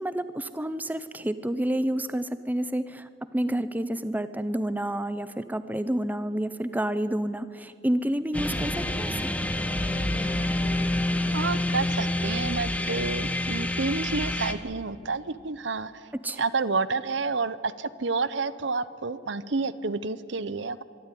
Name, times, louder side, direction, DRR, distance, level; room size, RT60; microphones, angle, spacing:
voice 1, 0.0-9.2 16.1-16.4, right 1 dB, 10° right, 13 dB, 0.6 m, -29 dB
sound 1, 8.3-14.5, left 1 dB, 5° left, 1.1 m, -27 dB
Bowed string instrument, 9.5-14.4, left 2 dB, 45° left, 2.2 m, -49 dB
voice 2, 11.3-15.9 16.4-20.8, right 4 dB, 60° right, 16 dB, 0.8 m, -29 dB
23.5 x 13.0 x 10.0 m, 2.5 s
head